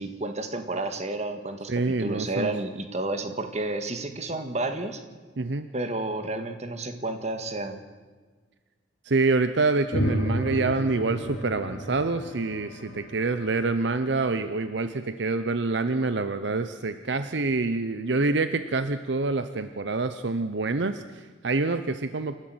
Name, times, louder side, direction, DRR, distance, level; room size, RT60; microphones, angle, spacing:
voice 1, 0.0-5.0 5.7-7.8, right 2 dB, 35° right, 7 dB, 1.8 m, -31 dB
voice 2, 1.7-2.5 5.4-5.7 9.0-22.4, right 3 dB, 65° right, 11 dB, 0.7 m, -26 dB
sound 1, 9.9-14.6, equal, 50° left, 2.6 m, -32 dB
27.5 x 13.0 x 7.9 m, 1.4 s
head